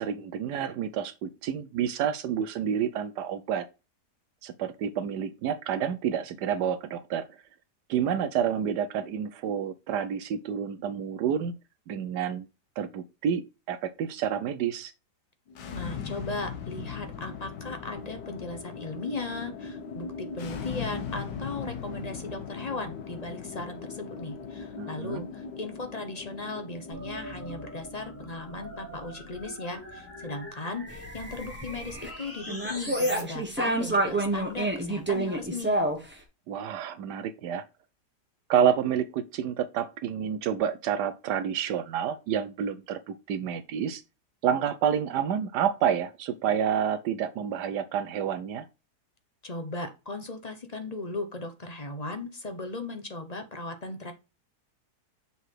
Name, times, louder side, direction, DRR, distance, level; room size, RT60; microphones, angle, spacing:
voice 1, 0.0-3.7 4.4-7.3 7.9-11.6 11.9-12.5 12.8-14.9 24.8-25.2 36.5-37.6 38.5-44.0 44.4-48.7, right 8 dB, 80° right, 1.2 m, -29 dB
sound 1, 15.5-30.4, left 6 dB, 85° left, 1.7 m, -40 dB
voice 2, 15.7-35.9 49.4-54.1, left 2 dB, 30° left, 1.0 m, -37 dB
sound 2, 26.9-33.2, equal, 10° left, 1.9 m, -42 dB
sound 3, 30.9-32.1 32.5-36.1, right 1 dB, 5° right, 1.3 m, -28 dB
6.7 x 4.1 x 4.8 m
omnidirectional pair, 1.8 m